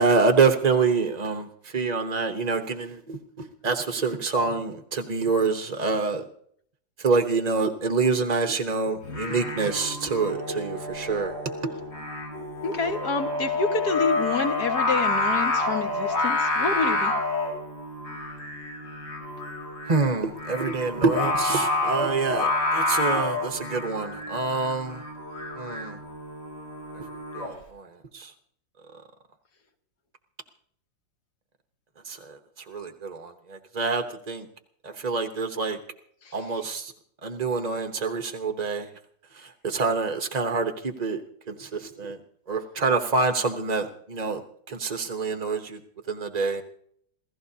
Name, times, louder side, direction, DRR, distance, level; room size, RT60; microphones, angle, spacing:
voice 1, 0.0-1.5 1.7-6.2 7.0-11.3 19.9-25.0 25.6-26.0 27.0-27.1 27.3-27.9 28.1-28.3 32.1-32.4 32.7-34.5 34.8-35.8 36.3-36.9 37.2-38.9 39.4-41.2 41.5-42.2 42.5-44.4 44.7-45.8 46.1-46.6, right 4 dB, 35° right, 6 dB, 0.7 m, -26 dB
Singing, 9.0-27.5, left 2 dB, 80° left, 5.3 m, -29 dB
voice 2, 12.6-17.1, left 4 dB, 60° left, 6 dB, 2.1 m, -28 dB
28.0 x 15.5 x 2.8 m, 0.64 s
omnidirectional pair, 2.0 m